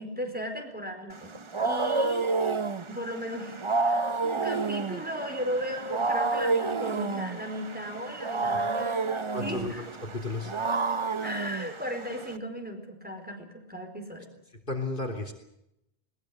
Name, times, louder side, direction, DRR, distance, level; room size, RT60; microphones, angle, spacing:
voice 1, 0.0-1.4 1.6-2.3 2.9-9.9 11.2-14.3, equal, 10° right, 3 dB, 4.6 m, -36 dB
Wild animals, 1.1-12.4, right 3 dB, 30° right, 0.9 m, -30 dB
voice 2, 9.3-10.5 14.7-15.3, left 2 dB, 55° left, 3 dB, 3.4 m, -33 dB
21.5 x 20.0 x 7.8 m, 0.83 s
omnidirectional pair, 1.1 m